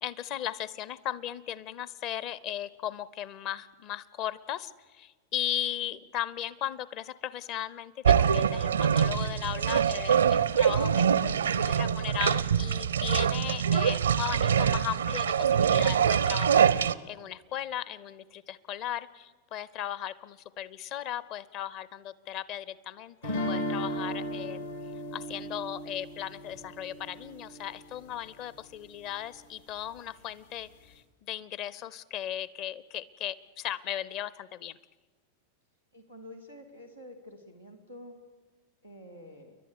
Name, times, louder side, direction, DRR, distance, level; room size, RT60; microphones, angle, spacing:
voice 1, 0.0-24.7 25.1-34.8, left 11 dB, 40° left, 18 dB, 0.7 m, -37 dB
sound 1, 8.0-16.9, right 8 dB, 70° right, 0.5 m, -24 dB
sound 2, 23.2-28.2, equal, 70° left, 2.3 m, -36 dB
voice 2, 35.9-38.2 38.8-39.6, left 1 dB, 90° left, 1 dB, 2.5 m, -48 dB
30.0 x 11.5 x 8.4 m, 1.4 s
figure-of-eight pair, 90°, 0 cm